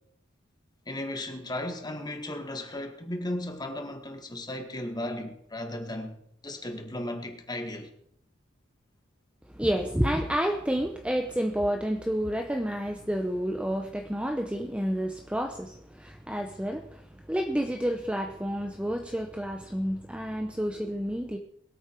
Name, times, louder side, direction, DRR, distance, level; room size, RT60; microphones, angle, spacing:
voice 1, 0.9-6.2 6.4-7.9, left 1 dB, 20° left, 1.8 m, -35 dB
voice 2, 9.5-21.4, equal, 5° right, 0.8 m, -30 dB
22.5 x 8.6 x 4.6 m
head